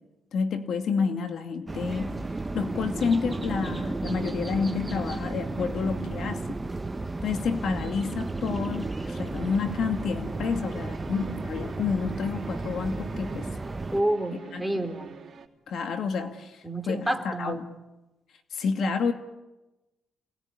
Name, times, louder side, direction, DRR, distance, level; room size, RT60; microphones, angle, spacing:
voice 1, 0.3-2.2 2.5-6.6 7.2-13.5 14.5-14.7 15.7-17.6 18.5-19.1, left 5 dB, 65° left, 6 dB, 2.4 m, -29 dB
sound 1, 1.7-14.0, right 2 dB, 20° right, 1.2 m, -33 dB
sound 2, 9.3-15.5, right 6 dB, 45° right, 3.5 m, -45 dB
voice 2, 13.9-15.1 16.6-17.7, right 1 dB, ahead, 5 dB, 3.6 m, -29 dB
28.5 x 20.5 x 9.8 m, 1.1 s
cardioid pair, 90°, 0 cm